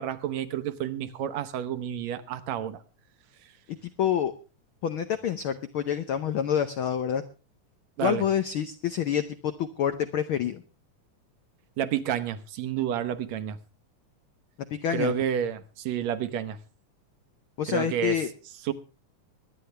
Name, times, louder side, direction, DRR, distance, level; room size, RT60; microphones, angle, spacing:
voice 1, 0.0-2.8 8.0-8.2 11.8-13.6 14.9-16.6 17.7-18.2 18.7-18.8, right 9 dB, 70° right, 12 dB, 2.1 m, -30 dB
voice 2, 3.7-4.3 4.8-7.2 8.0-10.6 14.7-15.1 17.6-18.3, left 9 dB, 80° left, 10 dB, 1.1 m, -27 dB
23.0 x 9.9 x 3.3 m, 0.33 s
omnidirectional pair, 3.4 m